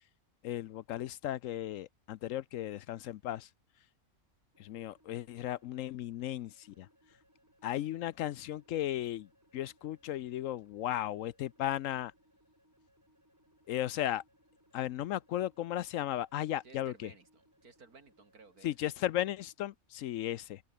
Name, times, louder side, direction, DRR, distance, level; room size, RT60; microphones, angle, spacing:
voice 1, 0.4-3.5 4.6-6.9 7.6-9.3 9.5-12.1 13.7-14.2 14.7-17.1 18.6-20.6, left 12 dB, 70° left, 0.9 m, -35 dB
sound 1, 4.5-19.5, equal, 10° right, 7.5 m, -69 dB
voice 2, 16.6-18.7, right 4 dB, 90° right, 3.3 m, -56 dB
omnidirectional pair, 1.5 m